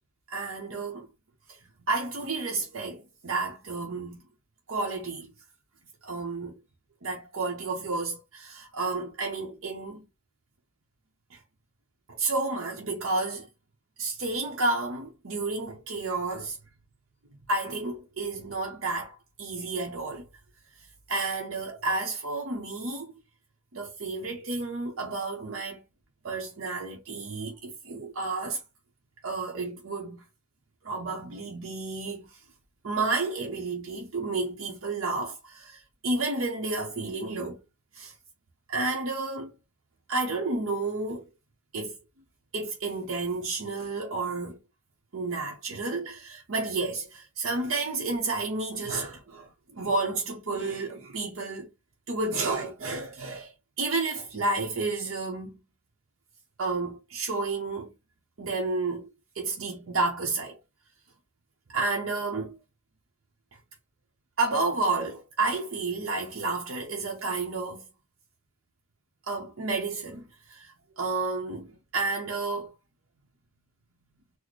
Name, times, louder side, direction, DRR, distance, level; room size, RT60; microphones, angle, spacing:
voice 1, 0.3-1.1 1.5-1.6 1.9-4.2 4.7-5.3 6.0-6.6 7.0-10.0 11.3-11.4 12.1-13.5 14.0-16.6 17.5-20.2 21.1-23.1 23.7-25.8 26.2-28.6 29.2-30.2 30.8-32.3 32.8-37.6 37.9-38.1 38.7-39.5 40.1-41.2 41.7-41.9 42.5-44.6 45.1-51.7 52.1-53.5 53.8-55.6 56.6-57.9 58.4-59.1 59.4-60.6 61.7-62.6 64.4-67.8 69.3-72.7, right 3 dB, 75° right, 0.8 m, -31 dB
4.1 x 2.1 x 3.0 m
head